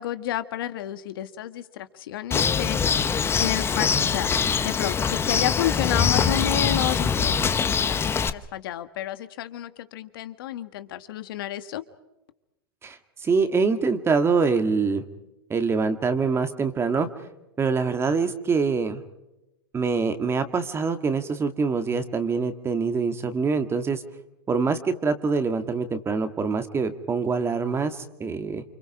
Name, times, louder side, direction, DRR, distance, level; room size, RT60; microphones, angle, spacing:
voice 1, 0.0-3.0 3.4-11.8, left 13 dB, 70° left, 11 dB, 1.7 m, -31 dB
Bird, 2.3-8.3, left 6 dB, 20° left, 1.0 m, -23 dB
voice 2, 12.8-15.0 15.5-17.1 17.6-19.0 19.7-24.0 24.5-28.6, right 4 dB, 20° right, 8 dB, 2.0 m, -25 dB
29.0 x 26.0 x 4.9 m, 0.95 s
hypercardioid pair, 110°, 12 cm